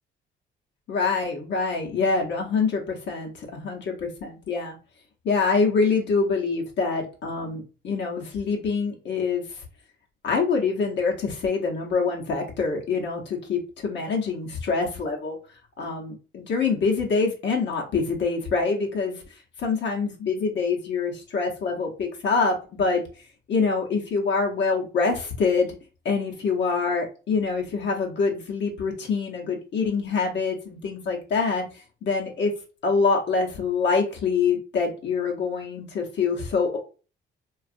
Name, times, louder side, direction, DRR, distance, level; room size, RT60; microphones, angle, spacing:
voice 1, 0.9-4.8 5.2-9.4 10.2-15.4 15.8-19.2 19.6-23.0 23.5-25.7 26.0-31.6 32.0-32.5 32.8-36.8, left 4 dB, 65° left, 0 dB, 0.8 m, -25 dB
2.5 x 2.4 x 2.4 m, 0.34 s
cardioid pair, 90°, 20 cm